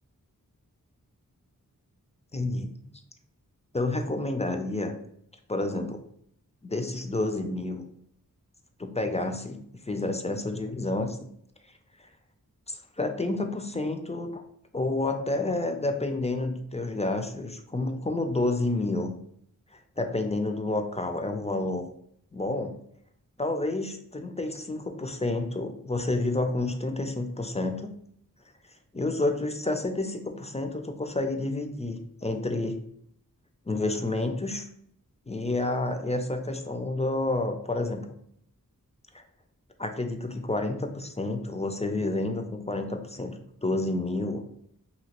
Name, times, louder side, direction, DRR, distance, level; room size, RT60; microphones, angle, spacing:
voice 1, 2.3-2.7 3.7-4.9 5.5-6.0 6.6-7.8 8.8-9.6 9.9-11.2 12.7-14.4 14.7-19.1 20.0-21.8 22.3-22.7 23.4-27.9 28.9-32.8 33.7-34.7 35.3-38.1 39.1-39.2 39.8-43.3 43.6-44.4, left 2 dB, 20° left, 5 dB, 0.4 m, -29 dB
2.9 x 2.8 x 2.9 m, 0.68 s
wide cardioid pair, 40°, 34 cm